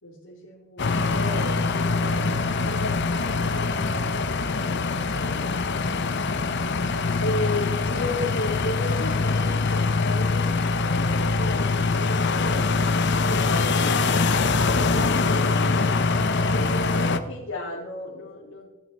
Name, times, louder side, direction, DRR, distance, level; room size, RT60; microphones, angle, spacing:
voice 1, 0.0-2.2 2.6-6.1 7.2-15.7 16.5-18.7, left 2 dB, 85° left, -7 dB, 2.7 m, -35 dB
sound 1, 0.8-17.2, left 3 dB, 55° left, 0.8 m, -23 dB
16.0 x 9.3 x 4.3 m, 1.1 s
head